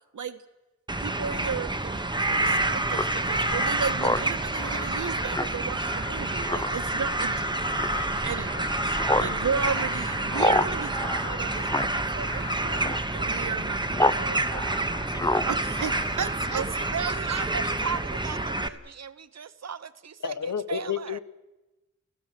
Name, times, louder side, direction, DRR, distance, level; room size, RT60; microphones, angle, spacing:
sound 1, 0.9-18.7, right 2 dB, 15° right, 1.1 m, -28 dB
voice 1, 1.0-7.4 8.2-17.5, right 6 dB, 75° right, 9 dB, 1.4 m, -34 dB
Speech synthesizer, 2.9-14.2 14.5-16.7, left 1 dB, 10° left, 0.7 m, -31 dB
sound 2, 3.0-12.7, left 3 dB, 35° left, 6.7 m, -53 dB
voice 2, 16.9-21.2, right 6 dB, 55° right, 13 dB, 0.9 m, -35 dB
voice 3, 20.2-21.2, left 7 dB, 70° left, 12 dB, 1.3 m, -30 dB
29.0 x 15.5 x 7.6 m, 1.0 s
wide cardioid pair, 120°, 31 cm